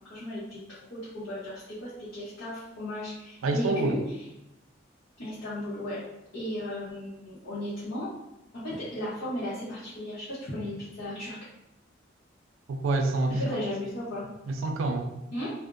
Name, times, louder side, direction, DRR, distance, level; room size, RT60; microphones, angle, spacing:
voice 1, 0.1-4.0 5.2-6.0 6.3-8.1 8.5-11.4 13.4-14.3 15.3-15.5, left 1 dB, 90° left, -11 dB, 0.9 m, -35 dB
voice 2, 3.4-4.0 12.7-13.6 14.5-15.1, right 2 dB, 85° right, 5 dB, 0.3 m, -27 dB
2.5 x 2.1 x 2.5 m, 0.88 s
head